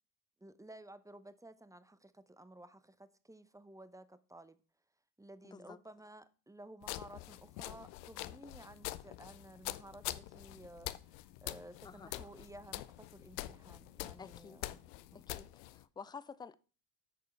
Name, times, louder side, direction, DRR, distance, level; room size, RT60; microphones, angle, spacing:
voice 1, 0.4-4.6 5.2-14.8 15.1-15.2, right 1 dB, 5° right, 0.7 m, -55 dB
sound 1, 6.8-15.8, left 17 dB, 65° left, 0.7 m, -45 dB
voice 2, 14.2-14.6 15.1-16.6, left 5 dB, 10° left, 0.4 m, -50 dB
8.8 x 6.7 x 3.2 m
hypercardioid pair, 65°, 49 cm